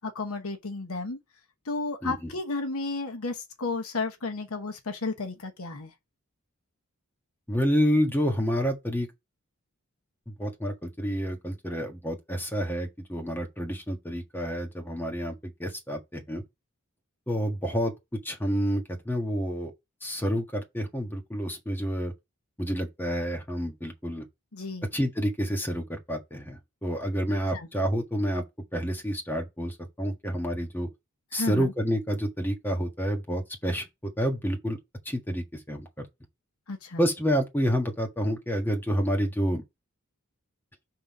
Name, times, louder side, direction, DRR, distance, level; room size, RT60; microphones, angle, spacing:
voice 1, 0.0-1.2 1.7-5.9 24.5-24.9 27.5-27.7 31.3-31.7 36.7-37.0, left 3 dB, 70° left, 1.1 m, -33 dB
voice 2, 7.5-9.1 10.3-16.4 17.3-17.9 18.2-19.7 20.0-22.1 22.6-24.2 24.9-28.4 28.7-30.9 31.3-33.8 34.2-34.8 35.0-36.0 37.0-39.6, equal, 10° left, 1.6 m, -29 dB
5.5 x 3.9 x 5.4 m
head